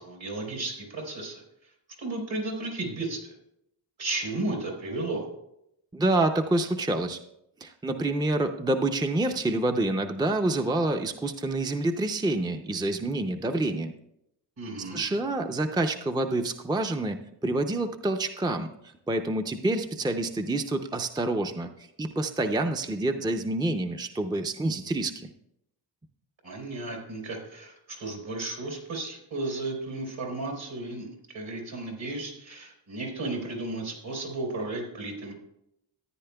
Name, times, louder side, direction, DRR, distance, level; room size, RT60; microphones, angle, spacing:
voice 1, 0.0-1.4 2.0-3.3 4.0-5.3 14.6-15.0 26.4-35.3, right 2 dB, 70° right, 0 dB, 3.6 m, -34 dB
voice 2, 5.9-7.2 7.6-13.9 14.8-18.7 19.1-21.7 22.0-25.3, right 2 dB, 10° right, 6 dB, 0.5 m, -27 dB
14.0 x 9.4 x 2.3 m, 0.79 s
cardioid pair, 60°, 47 cm